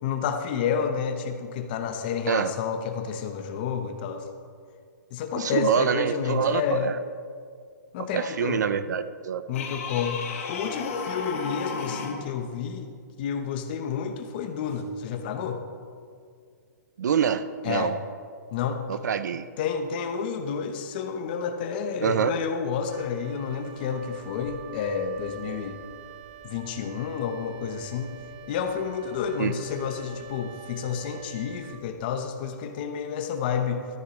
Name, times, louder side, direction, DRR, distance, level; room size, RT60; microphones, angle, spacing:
voice 1, 0.0-4.3 5.1-6.9 7.9-8.6 9.5-10.2 10.5-12.9 13.2-15.6 17.6-18.0 18.5-18.8 19.6-25.8 26.4-28.1 28.5-33.9, left 7 dB, 30° left, 6 dB, 0.9 m, -30 dB
voice 2, 5.3-7.0 8.0-9.4 17.0-18.0 18.9-19.5 22.0-22.3 29.4-29.5, right 7 dB, 70° right, 13 dB, 0.6 m, -25 dB
sound 1, 9.5-12.3 14.7-14.8, left 5 dB, 45° left, 2.0 m, -33 dB
Wind instrument woodwind instrument, 22.8-32.3, right 8 dB, 10° right, 0.4 m, -46 dB
13.5 x 13.0 x 3.1 m, 2.1 s
hypercardioid pair, 165°, 10 cm